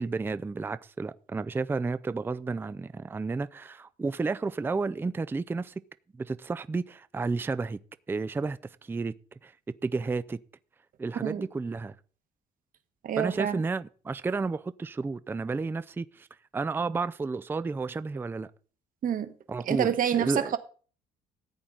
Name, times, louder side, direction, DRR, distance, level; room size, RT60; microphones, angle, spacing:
voice 1, 0.0-5.7 6.2-7.8 8.1-9.1 9.4-9.5 9.8-10.4 11.0-11.9 13.2-16.3 16.5-18.5 19.5-20.5, right 4 dB, 15° right, 0.4 m, -31 dB
voice 2, 13.0-13.6 19.0-19.3 19.6-20.6, right 9 dB, 55° right, 1.3 m, -27 dB
14.0 x 8.7 x 3.9 m
cardioid pair, 110°, 17 cm